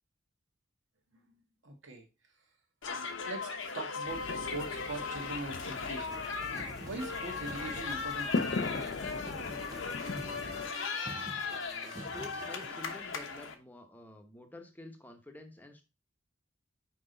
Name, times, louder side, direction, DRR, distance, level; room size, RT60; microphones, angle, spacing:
voice 1, 1.6-2.0 3.2-6.2 6.8-8.9, right 2 dB, 80° right, 3 dB, 1.6 m, -42 dB
sound 1, 2.8-13.5, left 5 dB, 80° left, 1.0 m, -38 dB
sound 2, 4.1-10.7, left 3 dB, 55° left, 0.5 m, -39 dB
sound 3, 6.1-12.7, right 2 dB, 20° right, 0.3 m, -48 dB
voice 2, 11.4-15.8, left 2 dB, 10° left, 5 dB, 0.9 m, -50 dB
6.0 x 4.9 x 3.9 m, 0.28 s
head